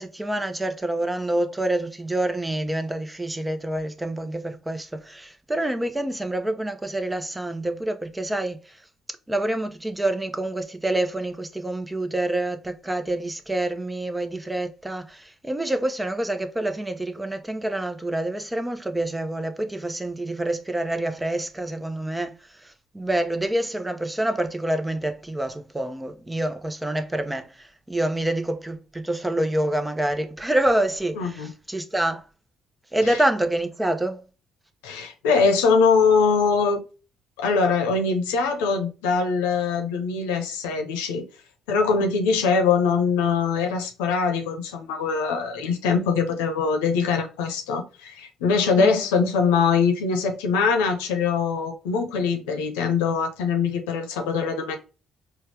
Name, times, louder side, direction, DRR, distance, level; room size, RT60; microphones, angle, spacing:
voice 1, 0.0-8.8 9.3-22.3 22.6-32.2 32.9-34.2 48.7-49.0, right 1 dB, 15° right, 0.7 m, -27 dB
voice 2, 31.2-31.5 33.0-33.2 34.8-36.8 37.4-41.2 41.7-54.8, left 5 dB, 85° left, 0.8 m, -22 dB
4.3 x 2.3 x 3.3 m
hypercardioid pair, 50°, 0 cm